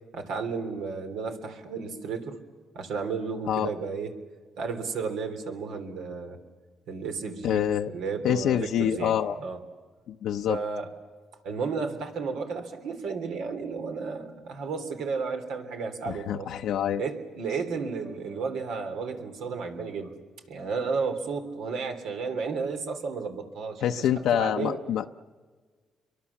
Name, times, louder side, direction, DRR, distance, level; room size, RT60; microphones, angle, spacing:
voice 1, 0.1-2.4 2.7-4.1 4.6-6.4 6.9-9.6 10.5-10.9 11.4-16.5 17.0-20.1 20.5-24.8, right 5 dB, 85° right, 5 dB, 3.2 m, -33 dB
voice 2, 7.4-7.9 8.2-9.4 10.1-10.6 16.1-17.0 23.8-25.1, left 10 dB, 80° left, 4 dB, 0.7 m, -26 dB
29.5 x 23.5 x 7.1 m, 1.5 s
cardioid pair, 90°, 0 cm